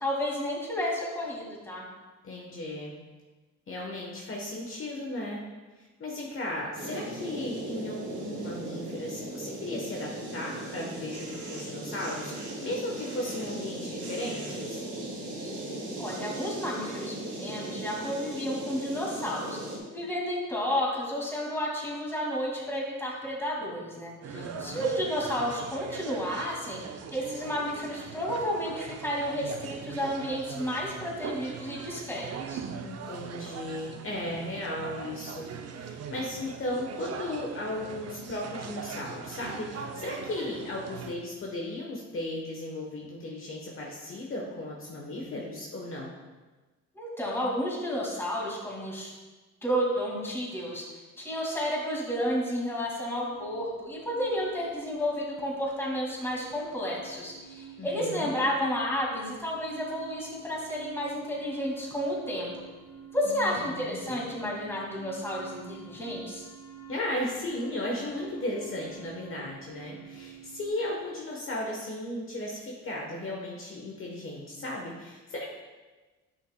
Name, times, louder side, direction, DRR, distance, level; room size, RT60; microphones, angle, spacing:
voice 1, 0.0-1.8 16.0-19.6 19.9-26.8 27.1-32.6 46.9-49.1 49.6-50.8 51.2-62.5 63.1-66.4, equal, 10° left, -4 dB, 2.2 m, -31 dB
voice 2, 2.2-2.9 3.7-5.4 5.7-14.8 24.3-24.8 32.7-46.1 57.8-58.3 63.2-64.2 66.9-75.5, left 1 dB, 45° left, -2 dB, 1.1 m, -36 dB
sound 1, 6.7-19.8, right 1 dB, 75° right, 2.2 m, -38 dB
sound 2, 24.2-41.2, right 6 dB, 55° right, 0.6 m, -41 dB
sound 3, 53.3-70.7, right 7 dB, 75° left, 1.7 m, -49 dB
9.8 x 5.8 x 2.3 m, 1.3 s
cardioid pair, 90°, 30 cm